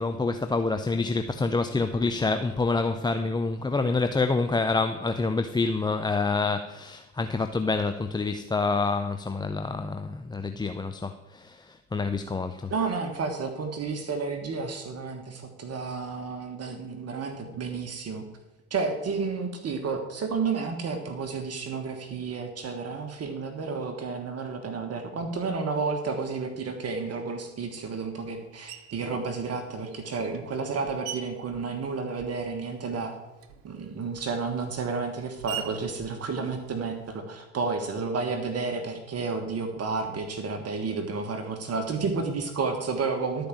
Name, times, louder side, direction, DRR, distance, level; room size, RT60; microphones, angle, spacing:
voice 1, 0.0-12.9, left 3 dB, 10° left, 8 dB, 0.5 m, -27 dB
voice 2, 12.7-18.2 18.7-33.2 33.6-43.5, right 4 dB, 40° right, 5 dB, 1.6 m, -31 dB
Screech, 28.7-29.2 29.9-32.6 32.9-37.2, right 10 dB, 65° right, 1.2 m, -43 dB
12.5 x 5.1 x 7.4 m, 1.1 s
hypercardioid pair, 75°, 38 cm